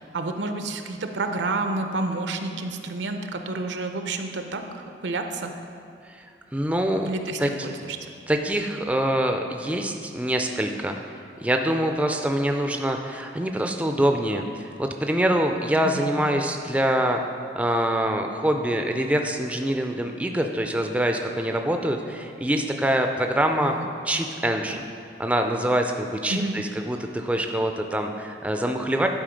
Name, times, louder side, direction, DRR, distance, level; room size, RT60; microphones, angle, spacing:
voice 1, 0.1-5.5 7.0-8.0 15.8-16.1 23.6-23.9 26.3-26.5, right 2 dB, 85° right, 6 dB, 0.6 m, -30 dB
voice 2, 6.5-7.1 7.4-7.7 8.3-17.2 17.6-23.7 24.0-24.8 25.2-29.1, right 1 dB, 5° right, 4 dB, 0.3 m, -25 dB
11.0 x 4.4 x 5.1 m, 2.4 s
head